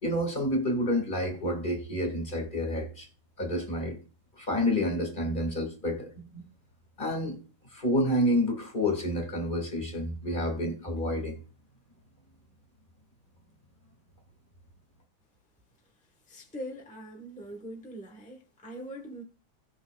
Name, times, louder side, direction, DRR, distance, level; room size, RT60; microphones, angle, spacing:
voice 1, 0.0-3.1 3.4-4.0 4.4-6.4 7.0-7.4 7.7-11.4, left 1 dB, 25° left, 1.8 m, -29 dB
voice 2, 16.3-19.2, equal, 5° left, 0.5 m, -42 dB
17.5 x 6.1 x 2.3 m
omnidirectional pair, 2.4 m